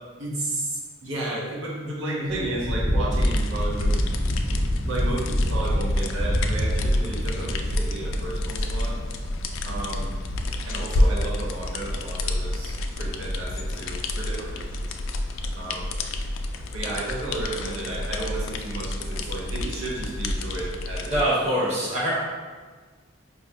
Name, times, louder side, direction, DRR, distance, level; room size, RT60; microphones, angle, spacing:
voice 1, 0.2-4.1 4.5-9.0 9.6-10.1 10.7-14.9 15.6-15.9 16.7-21.8, right 2 dB, 85° right, -5 dB, 0.7 m, -33 dB
sound 1, 2.3-20.7, equal, 5° left, 0.5 m, -31 dB
sound 2, 3.1-21.2, left 1 dB, 85° left, 0.3 m, -28 dB
voice 2, 21.1-22.2, right 1 dB, 35° right, -7 dB, 1.0 m, -23 dB
4.8 x 2.1 x 2.6 m, 1.4 s
head